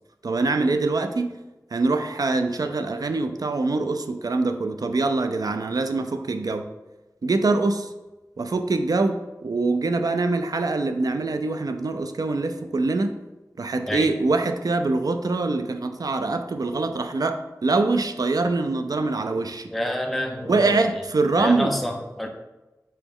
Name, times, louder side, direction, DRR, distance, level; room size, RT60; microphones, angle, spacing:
voice 1, 0.2-1.3 1.7-6.7 7.2-7.9 8.4-13.1 13.6-19.7 20.5-21.8, right 3 dB, 65° right, 7 dB, 0.4 m, -24 dB
voice 2, 19.7-20.8 21.4-22.3, left 1 dB, ahead, 2 dB, 0.5 m, -28 dB
4.4 x 3.0 x 3.6 m, 1.1 s
wide cardioid pair, 65°, 7 cm